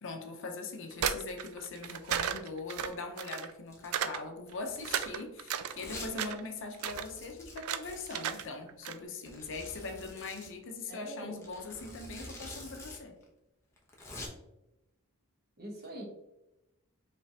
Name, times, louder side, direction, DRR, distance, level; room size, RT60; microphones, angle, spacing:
voice 1, 0.0-13.2, left 3 dB, 60° left, 4 dB, 0.7 m, -41 dB
sound 1, 0.9-3.5 3.9-4.2 4.5-5.7 6.1-6.5 6.7-7.0 7.6-7.8 8.1-8.4 8.7-9.0, right 9 dB, 75° right, 0.4 m, -34 dB
Domestic sounds home sounds, 3.7-4.0 4.5-5.1 5.7-6.1 6.4-6.5 6.8-8.5 9.3-10.5 11.4-13.0 13.2-13.3 13.8-14.3, left 2 dB, 15° left, 1.0 m, -47 dB
voice 2, 10.9-11.4 15.6-16.0, right 1 dB, 45° right, 0 dB, 1.1 m, -43 dB
5.3 x 3.3 x 2.8 m, 0.93 s
head